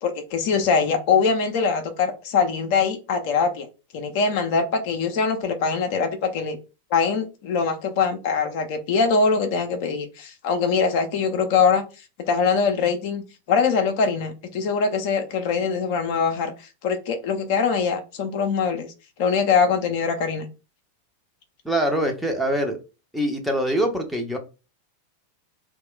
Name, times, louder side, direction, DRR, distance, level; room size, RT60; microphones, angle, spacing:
voice 1, 0.0-3.7 3.9-6.6 6.9-11.8 12.3-13.2 13.5-16.5 16.8-18.9 19.2-20.5, left 5 dB, 50° left, 5 dB, 0.5 m, -22 dB
voice 2, 21.6-22.8 23.1-24.4, right 1 dB, ahead, 2 dB, 0.6 m, -24 dB
2.2 x 2.2 x 3.7 m, 0.30 s
figure-of-eight pair, 90°, 0 cm